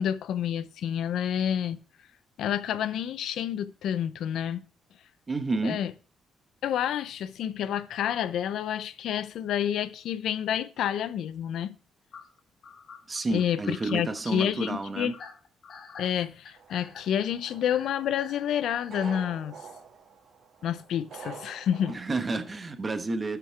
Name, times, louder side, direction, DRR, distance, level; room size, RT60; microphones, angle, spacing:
voice 1, 0.0-1.8 2.4-4.6 5.6-5.9 6.6-11.7 13.3-15.1 16.0-19.6 20.6-21.9, left 9 dB, 75° left, 0.5 m, -29 dB
voice 2, 5.3-5.8 13.1-15.1 21.9-23.4, right 3 dB, 30° right, 1.0 m, -30 dB
sound 1, 12.1-19.2, left 5 dB, 55° left, 1.3 m, -48 dB
sound 2, 16.5-22.0, right 5 dB, 60° right, 1.7 m, -46 dB
11.5 x 5.9 x 3.3 m
cardioid pair, 90°, 0 cm